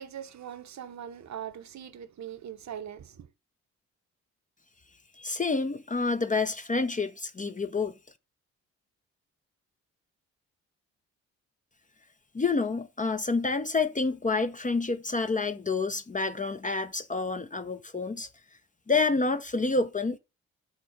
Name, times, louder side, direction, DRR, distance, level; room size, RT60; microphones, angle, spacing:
voice 1, 0.0-3.3, right 9 dB, 45° right, 1.0 m, -41 dB
voice 2, 5.2-7.9 12.3-18.3 18.9-20.2, left 3 dB, 20° left, 0.7 m, -28 dB
8.0 x 4.2 x 5.2 m
figure-of-eight pair, 40°, 39 cm